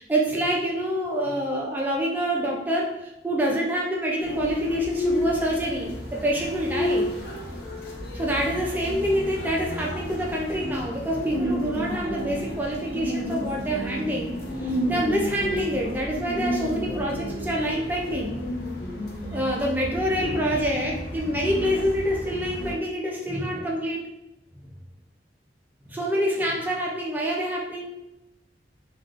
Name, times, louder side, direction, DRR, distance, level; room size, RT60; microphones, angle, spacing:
voice 1, 0.0-7.1 8.1-14.3 14.6-18.4 19.3-24.0 25.9-27.9, equal, 10° right, -3 dB, 0.5 m, -26 dB
sound 1, 4.2-22.7, left 1 dB, 55° left, 0.6 m, -31 dB
3.5 x 2.4 x 2.4 m, 0.90 s
head